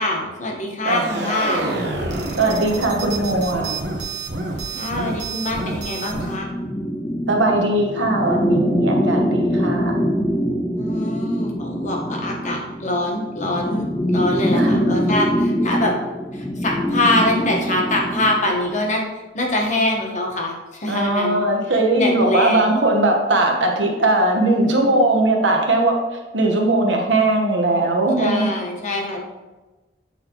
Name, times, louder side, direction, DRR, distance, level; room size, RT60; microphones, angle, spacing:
voice 1, 0.0-1.7 4.7-6.5 10.8-13.9 14.1-15.9 16.3-21.4 22.0-22.7 28.2-29.2, left 1 dB, 40° left, 0 dB, 1.1 m, -24 dB
voice 2, 0.8-1.3 2.4-3.7 7.3-10.0 14.5-15.1 20.9-26.0 26.3-28.5, right 2 dB, 85° right, 1 dB, 1.1 m, -19 dB
sound 1, 0.9-6.4, right 2 dB, 65° right, 1.0 m, -28 dB
sound 2, 6.0-18.5, equal, 10° left, 0.4 m, -23 dB
8.6 x 4.1 x 2.9 m, 1.2 s
head